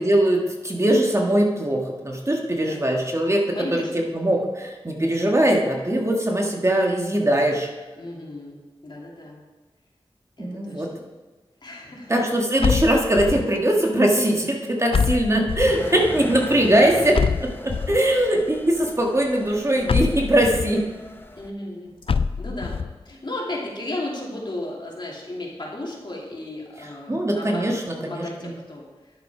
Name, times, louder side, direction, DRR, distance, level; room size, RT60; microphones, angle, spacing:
voice 1, 0.0-3.4 3.7-3.8 4.1-7.7 10.4-10.9 12.1-20.8 27.1-28.5, right 1 dB, 30° right, 0 dB, 1.6 m, -21 dB
voice 2, 2.5-2.9 3.5-4.0 7.9-9.4 10.4-11.0 11.6-12.1 15.8-16.0 21.4-21.9 22.3-22.8 23.0-27.7 28.0-29.1, left 1 dB, 50° left, -3 dB, 2.8 m, -35 dB
sound 1, 12.6-13.6 14.9-15.9 17.1-18.1 19.9-20.7 22.1-22.9, left 5 dB, 65° left, 0.4 m, -24 dB
Engine, 15.7-21.5, left 1 dB, 20° left, 0.9 m, -39 dB
11.0 x 7.0 x 4.9 m, 1.2 s
wide cardioid pair, 65°, 10 cm